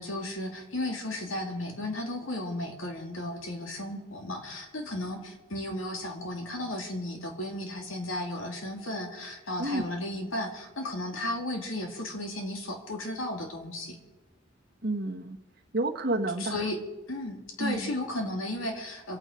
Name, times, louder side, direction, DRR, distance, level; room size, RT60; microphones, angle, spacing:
voice 1, 0.0-14.0 16.4-16.8 17.1-19.2, left 1 dB, 85° left, 2 dB, 2.8 m, -34 dB
voice 2, 14.8-15.4 15.7-16.6 17.6-17.9, right 2 dB, 50° right, 1 dB, 1.4 m, -30 dB
26.5 x 9.0 x 5.1 m, 1.1 s
head